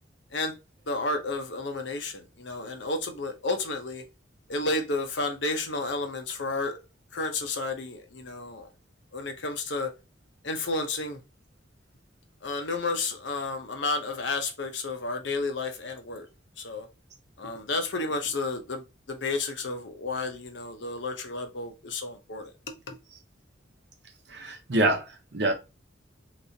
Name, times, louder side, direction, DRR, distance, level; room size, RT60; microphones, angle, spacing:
voice 1, 0.9-4.0 4.5-6.7 7.1-8.7 9.1-9.9 10.4-11.2 12.4-16.3 16.6-16.9 17.4-22.5 22.9-23.0, left 3 dB, 70° left, 0.8 m, -31 dB
voice 2, 24.3-25.5, right 1 dB, 60° right, 0.8 m, -26 dB
3.3 x 3.0 x 2.7 m
head